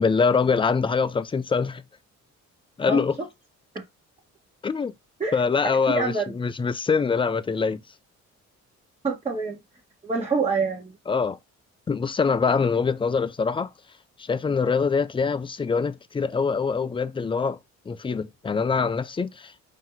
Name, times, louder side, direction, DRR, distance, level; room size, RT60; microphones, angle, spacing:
voice 1, 0.0-1.8 2.8-3.1 4.6-4.9 5.3-7.8 11.1-11.4 11.9-13.7 14.2-17.6 17.9-19.6, left 5 dB, 15° left, 0.4 m, -24 dB
voice 2, 5.9-6.3 9.0-9.6 10.0-10.9, right 4 dB, 20° right, 1.1 m, -26 dB
4.4 x 2.8 x 3.8 m
cardioid pair, 90°, 30 cm